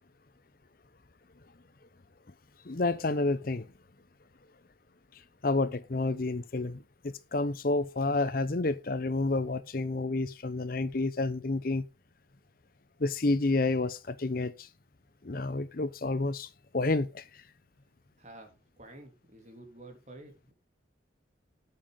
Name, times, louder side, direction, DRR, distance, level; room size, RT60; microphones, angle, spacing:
voice 1, 2.7-3.7 5.4-11.8 13.0-14.7 15.2-16.5 16.7-17.2, left 2 dB, 50° left, 0.7 m, -29 dB
voice 2, 18.2-20.5, right 2 dB, 40° right, 3.2 m, -50 dB
9.2 x 7.6 x 5.1 m
head